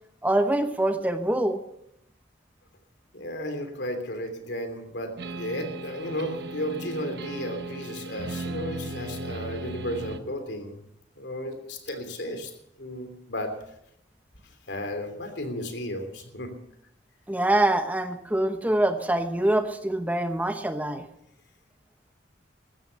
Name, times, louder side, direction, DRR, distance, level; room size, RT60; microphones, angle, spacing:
voice 1, 0.2-1.6 17.3-21.0, right 1 dB, 10° right, 8 dB, 0.9 m, -24 dB
voice 2, 3.1-10.8 11.2-12.5 12.8-13.5 14.7-16.5, equal, 70° left, 7 dB, 3.2 m, -34 dB
sound 1, 5.2-10.2, right 2 dB, 60° right, 1.0 m, -36 dB
15.0 x 13.5 x 7.0 m, 0.77 s
head